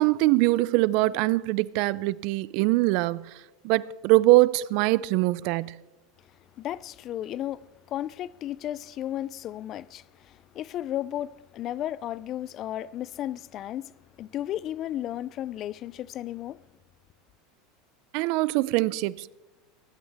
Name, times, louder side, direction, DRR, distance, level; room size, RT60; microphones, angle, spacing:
voice 1, 0.0-3.3 3.6-5.8 18.1-19.5, right 19 dB, 60° right, 0.4 m, -23 dB
voice 2, 6.6-16.6, left 12 dB, 45° left, 0.4 m, -34 dB
19.5 x 12.0 x 3.5 m
supercardioid pair, 115°, 0 cm